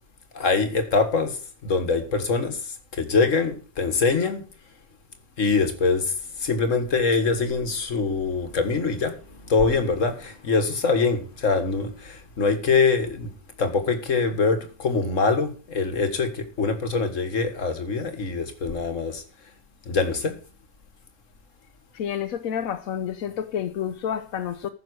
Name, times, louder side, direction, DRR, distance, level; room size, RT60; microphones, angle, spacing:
voice 1, 0.3-4.4 5.4-6.1 6.4-13.3 13.6-19.2 19.9-20.3, left 4 dB, 70° left, 2.0 m, -24 dB
voice 2, 21.9-24.7, left 9 dB, 90° left, 1.2 m, -29 dB
14.5 x 6.5 x 6.3 m
omnidirectional pair, 1.4 m